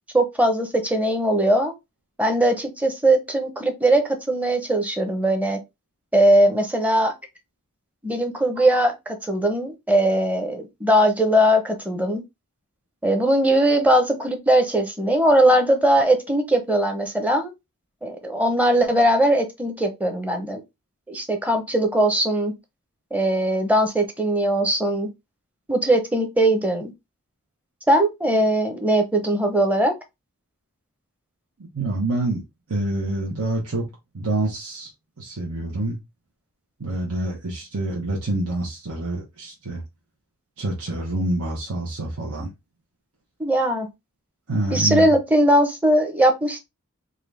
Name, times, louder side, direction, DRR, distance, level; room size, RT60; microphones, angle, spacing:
voice 1, 0.1-1.7 2.2-5.6 6.1-7.1 8.0-12.2 13.0-17.5 18.0-20.6 21.1-22.5 23.1-25.1 25.7-26.9 27.9-29.9 43.4-43.9 44.7-46.6, right 1 dB, 5° right, 0.7 m, -20 dB
voice 2, 31.7-32.4 32.7-33.9 34.1-34.9 35.2-36.0 36.8-39.8 40.6-42.5 44.5-45.0, right 2 dB, 80° right, 1.0 m, -26 dB
3.8 x 2.6 x 3.3 m
head